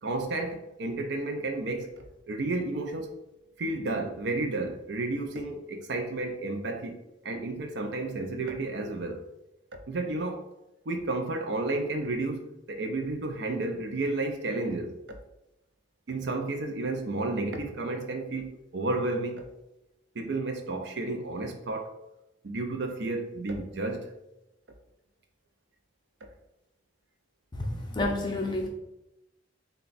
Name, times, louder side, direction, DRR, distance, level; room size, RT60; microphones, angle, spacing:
voice 1, 0.0-3.1 3.6-7.0 7.2-9.2 9.9-10.4 10.9-15.0 16.1-19.4 20.1-21.9 22.4-24.1, right 2 dB, 65° right, 0.5 m, -32 dB
voice 2, 27.9-28.7, left 2 dB, 25° left, 0.5 m, -29 dB
3.4 x 2.3 x 3.9 m
head